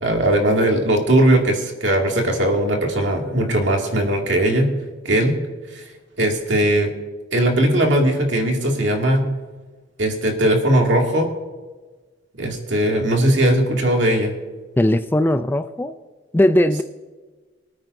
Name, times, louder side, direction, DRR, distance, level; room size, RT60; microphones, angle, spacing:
voice 1, 0.0-4.7 5.0-5.3 5.7-5.8 6.2-6.9 7.3-9.2 10.0-11.3 12.4-14.3, right 1 dB, 70° right, 1 dB, 2.3 m, -19 dB
voice 2, 14.8-16.0 16.3-16.8, left 1 dB, 10° left, 11 dB, 0.3 m, -18 dB
24.5 x 9.3 x 2.7 m, 1.3 s
head